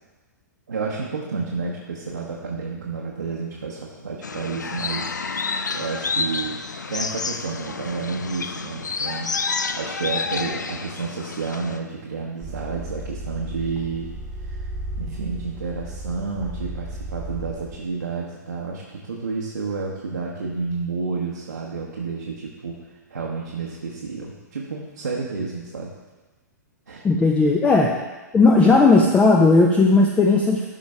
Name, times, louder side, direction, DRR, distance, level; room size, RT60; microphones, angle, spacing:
voice 1, 0.7-5.1 5.7-6.6 6.9-9.3 9.7-14.1 14.4-14.7 15.0-25.9 26.9-27.0, right 4 dB, 70° right, -3 dB, 1.2 m, -30 dB
sound 1, 4.2-11.8, left 4 dB, 70° left, 0.5 m, -29 dB
sound 2, 12.4-17.8, right 2 dB, 5° right, 1.2 m, -34 dB
voice 2, 27.0-27.9 28.3-30.7, left 3 dB, 10° left, 1 dB, 0.6 m, -16 dB
12.5 x 5.2 x 3.5 m, 1.2 s
figure-of-eight pair, 110°, 10 cm